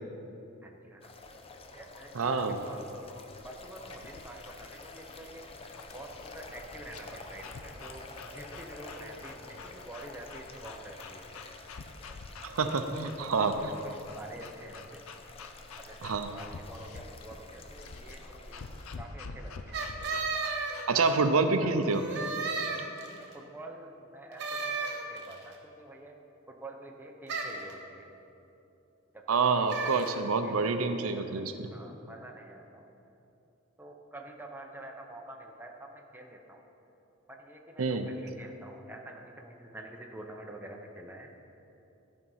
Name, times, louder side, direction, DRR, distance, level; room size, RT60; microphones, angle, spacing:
voice 1, 0.6-1.1 1.7-2.4 2.7-2.8 3.1-5.4 5.9-11.3 12.6-15.0 15.8-18.7 19.0-20.4 20.9-21.2 21.6-21.7 23.3-26.2 26.5-28.1 29.1-29.6 30.1-32.9 33.8-36.6 37.3-41.3, right 1 dB, 10° right, 1 dB, 0.8 m, -47 dB
sound 1, 1.0-19.0, left 2 dB, 30° left, 0.7 m, -49 dB
voice 2, 2.1-2.6 12.4-13.7 16.0-16.3 20.9-22.0 29.3-31.7 37.8-38.1, right 4 dB, 75° right, 8 dB, 0.6 m, -27 dB
sound 2, 3.4-21.3, left 4 dB, 80° left, 0.6 m, -48 dB
sound 3, 19.7-21.4 21.9-23.3 24.4-25.4 27.3-27.7 29.7-30.1, right 4 dB, 55° right, 1.3 m, -34 dB
13.5 x 5.4 x 5.5 m, 2.9 s
head